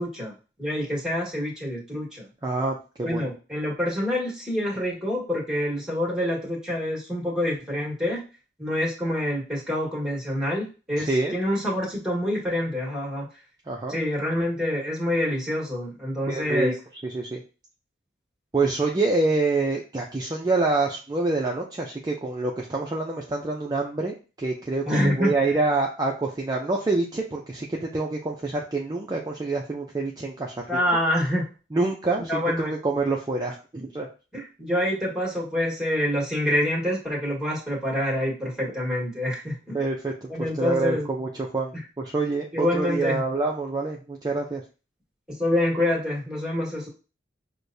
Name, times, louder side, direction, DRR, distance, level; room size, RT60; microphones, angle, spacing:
voice 1, 0.0-2.3 3.0-8.2 8.6-13.3 13.9-16.7 24.9-25.3 30.7-31.5 32.3-32.7 34.3-39.8 40.3-41.1 42.5-43.2 45.4-46.9, left 1 dB, 5° right, -3 dB, 1.5 m, -26 dB
voice 2, 2.4-3.3 11.0-11.4 13.7-13.9 16.3-16.7 17.0-17.4 18.5-30.7 31.7-34.1 39.7-44.6, right 3 dB, 20° right, -1 dB, 0.5 m, -26 dB
6.3 x 2.2 x 2.6 m, 0.33 s
head